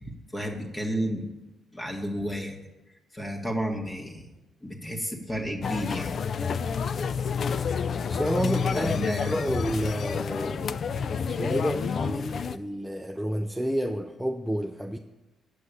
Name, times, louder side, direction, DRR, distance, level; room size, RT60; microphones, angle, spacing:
voice 1, 0.0-1.3 1.7-2.6 3.1-4.3 4.6-6.2 8.7-9.3, equal, 15° left, 1.8 m, -32 dB
sound 1, 5.6-12.6, left 6 dB, 50° left, 0.4 m, -29 dB
voice 2, 8.1-9.0 9.3-10.8 11.3-15.0, equal, 5° right, 0.6 m, -30 dB
8.5 x 6.1 x 8.1 m
cardioid pair, 90°, 0 cm